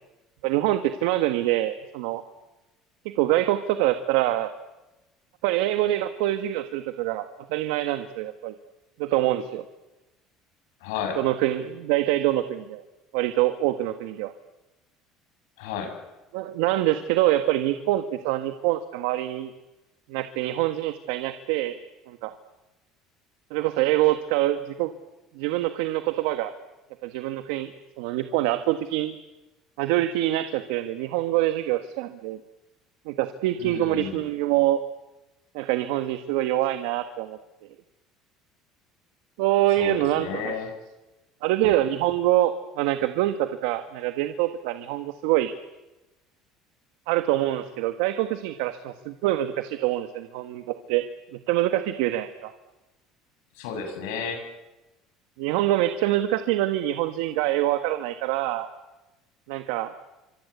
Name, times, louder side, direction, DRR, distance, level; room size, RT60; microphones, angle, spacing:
voice 1, 0.4-2.2 3.2-4.5 5.4-8.5 9.0-9.6 11.2-12.8 13.1-14.3 16.3-19.5 20.1-21.8 22.1-22.3 23.5-24.9 25.3-26.5 27.0-27.7 28.0-29.1 29.8-32.4 33.0-34.8 35.5-37.4 39.4-40.5 41.4-45.5 47.1-51.0 51.5-52.5 55.4-58.7 59.5-59.9, right 14 dB, 85° right, 9 dB, 1.5 m, -25 dB
voice 2, 10.8-11.2 15.6-15.9 33.6-34.2 39.8-40.7 53.6-54.4, left 6 dB, 90° left, 6 dB, 7.1 m, -32 dB
26.0 x 25.5 x 8.2 m, 1.0 s
supercardioid pair, 115°, 0 cm